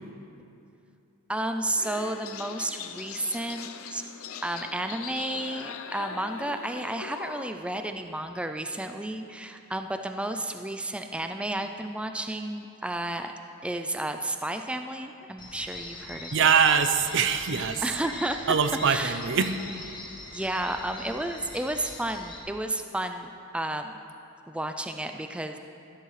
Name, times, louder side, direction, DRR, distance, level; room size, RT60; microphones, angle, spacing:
voice 1, 1.3-4.0 4.4-13.3 13.6-16.4 17.8-18.6 18.9-19.2 20.3-23.9 24.5-25.6, right 1 dB, 5° right, 6 dB, 0.3 m, -32 dB
sound 1, 1.8-7.5, left 7 dB, 70° left, 0.5 m, -40 dB
sound 2, 15.4-22.4, left 2 dB, 20° left, 1.3 m, -42 dB
voice 2, 16.3-17.8 18.5-19.5, right 6 dB, 60° right, 9 dB, 0.6 m, -23 dB
13.0 x 12.0 x 3.3 m, 2.7 s
head